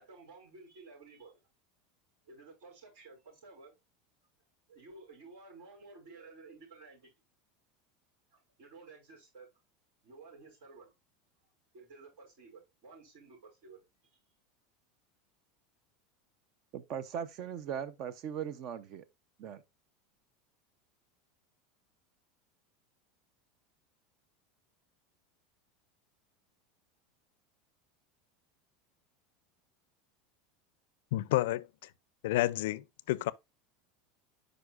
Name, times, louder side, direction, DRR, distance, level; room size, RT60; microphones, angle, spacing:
voice 1, 0.0-1.4 2.2-3.7 4.7-7.1 8.3-9.5 10.0-10.9 11.7-14.2, right 3 dB, 65° right, 5.2 m, -54 dB
voice 2, 16.7-19.0 19.4-19.6, right 8 dB, 45° right, 0.7 m, -39 dB
voice 3, 31.1-31.7 32.2-33.3, left 16 dB, 75° left, 0.4 m, -30 dB
9.5 x 5.1 x 2.4 m
supercardioid pair, 160°, 0 cm